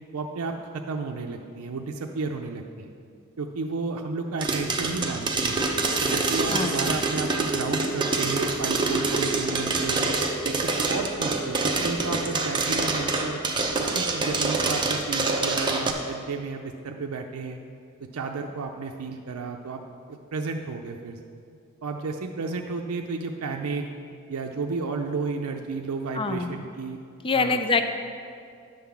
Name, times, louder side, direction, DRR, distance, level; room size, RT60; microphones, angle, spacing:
voice 1, 0.1-2.9 3.4-5.6 6.0-10.1 10.4-13.4 13.8-17.6 18.1-19.8 20.1-21.2 21.8-23.8 24.3-27.0 27.3-27.6, right 4 dB, 75° right, 3 dB, 0.5 m, -32 dB
sound 1, 4.4-15.9, right 3 dB, 20° right, 0.7 m, -26 dB
voice 2, 6.5-7.0 26.1-26.5 27.2-27.8, left 4 dB, 25° left, 7 dB, 0.4 m, -25 dB
10.5 x 3.8 x 7.1 m, 2.4 s
head